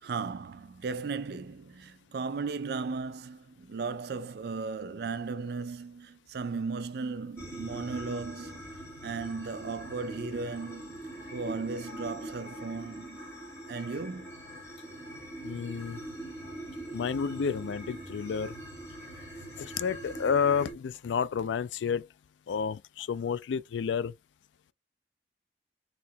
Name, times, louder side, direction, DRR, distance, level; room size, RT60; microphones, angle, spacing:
voice 1, 0.0-8.7 9.0-11.0 11.3-13.2 13.7-14.3, right 4 dB, 65° right, 0.4 m, -36 dB
sound 1, 7.4-20.7, right 1 dB, 15° left, 1.7 m, -43 dB
voice 2, 15.4-16.0 16.9-18.6 19.6-22.1 22.5-24.1, left 6 dB, 90° left, 0.3 m, -30 dB
4.2 x 2.9 x 2.2 m
head